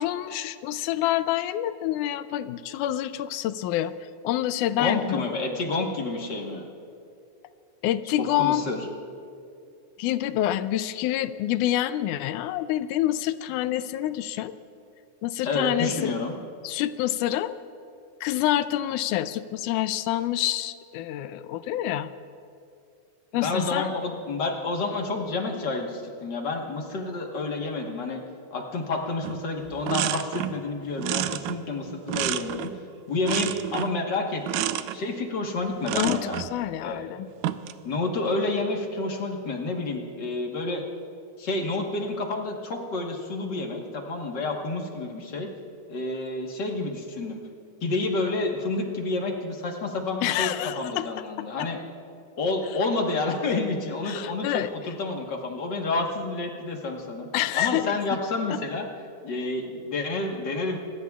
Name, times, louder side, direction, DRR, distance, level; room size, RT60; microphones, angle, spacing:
voice 1, 0.0-3.9 4.2-5.3 7.8-8.7 10.0-14.5 15.2-16.1 16.6-17.6 18.2-22.1 23.3-23.9 35.9-37.3 50.2-51.2 51.6-51.7 54.1-54.7 57.3-57.9, left 13 dB, 85° left, 13 dB, 2.1 m, -27 dB
voice 2, 4.7-6.6 8.2-8.9 15.4-16.3 23.3-28.2 28.5-32.7 33.1-34.7 34.9-36.4 36.8-37.0 37.8-40.8 41.4-45.5 45.9-47.4 47.8-51.8 52.4-57.3 57.5-58.9 59.2-60.8, left 3 dB, 45° left, 1 dB, 1.5 m, -29 dB
sound 1, 29.2-29.4 29.7-30.6 31.0-32.8 33.2-34.0 34.5-35.0 35.8-36.5 37.3-37.8, right 13 dB, 85° right, 2.0 m, -30 dB
26.5 x 21.5 x 2.4 m, 2.6 s
omnidirectional pair, 3.5 m